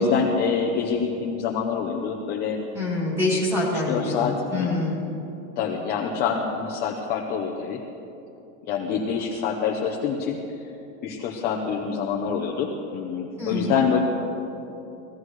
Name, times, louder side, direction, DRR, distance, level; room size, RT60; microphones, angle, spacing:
voice 1, 0.0-2.6 3.7-4.7 5.6-7.8 8.7-10.7 11.0-14.0, left 6 dB, 25° left, 0 dB, 0.7 m, -26 dB
voice 2, 2.7-5.0 13.4-13.7, left 2 dB, 5° right, -6 dB, 3.4 m, -25 dB
22.0 x 15.5 x 3.2 m, 2.9 s
supercardioid pair, 175°, 40 cm